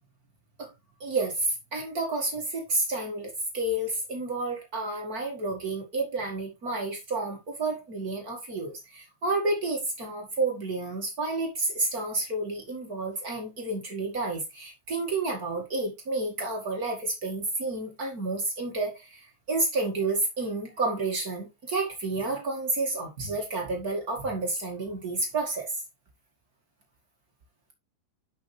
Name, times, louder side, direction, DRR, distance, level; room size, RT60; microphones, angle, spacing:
voice 1, 1.0-25.8, right 2 dB, 50° right, 1.1 m, -30 dB
10.5 x 5.7 x 3.2 m
omnidirectional pair, 5.1 m